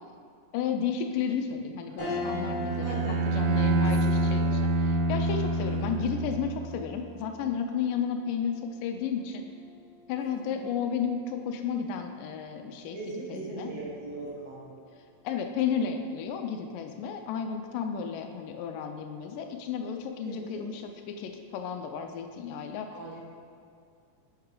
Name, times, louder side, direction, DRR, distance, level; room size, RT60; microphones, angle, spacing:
voice 1, 0.5-3.0 3.3-9.5 10.1-13.0 13.3-13.7 15.2-22.9, left 7 dB, 80° left, 5 dB, 2.1 m, -33 dB
sound 1, 2.0-11.6 12.1-12.2 13.5-13.9, left 3 dB, 30° left, 2.2 m, -42 dB
Bowed string instrument, 2.0-6.8, right 2 dB, 80° right, 1.9 m, -27 dB
voice 2, 2.8-3.2 3.8-4.5 10.2-10.6 12.9-14.6 20.2-20.7 22.5-23.3, right 2 dB, 55° right, -6 dB, 2.1 m, -40 dB
8.6 x 5.6 x 3.8 m, 2.3 s
omnidirectional pair, 3.9 m